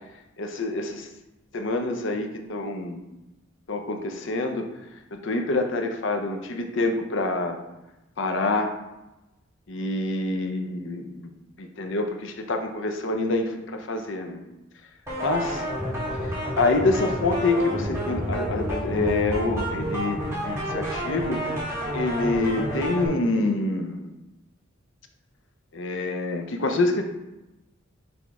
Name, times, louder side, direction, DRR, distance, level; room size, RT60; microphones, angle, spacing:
voice 1, 0.4-1.1 1.5-3.0 3.7-4.7 5.1-7.6 8.2-8.8 9.7-11.3 11.6-14.4 15.2-15.6 16.3-20.2 20.4-21.4 21.9-24.1 25.7-27.0, left 2 dB, 65° left, 5 dB, 0.7 m, -26 dB
sound 1, 15.1-23.1, equal, 15° right, 2.0 m, -29 dB
6.1 x 3.5 x 4.7 m, 0.98 s
head